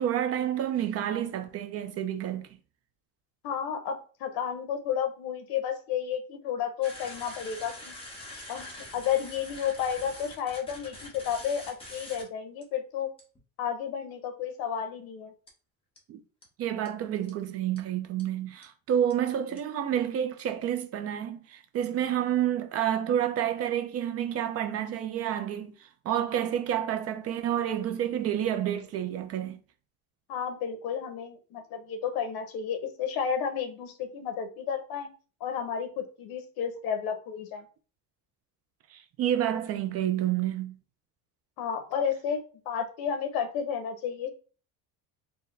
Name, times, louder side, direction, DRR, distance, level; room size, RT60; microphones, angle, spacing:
voice 1, 0.0-2.5 16.1-16.2 16.6-29.6 38.9-40.8, right 10 dB, 40° right, 0.4 m, -29 dB
voice 2, 3.4-7.9 8.5-13.1 13.6-15.3 30.3-35.1 35.4-37.7 41.6-44.3, left 8 dB, 65° left, 0.9 m, -32 dB
sound 1, 6.8-12.2 12.6-12.7 13.2-13.4 15.5-15.6 16.0-16.1 16.4-16.5 16.9-17.0 17.3-17.4 17.8-17.9 18.2-18.3 18.6-18.7 19.1-19.2 19.6-19.7, left 1 dB, 15° left, 1.0 m, -44 dB
4.4 x 2.1 x 3.2 m
cardioid pair, 145°, 39 cm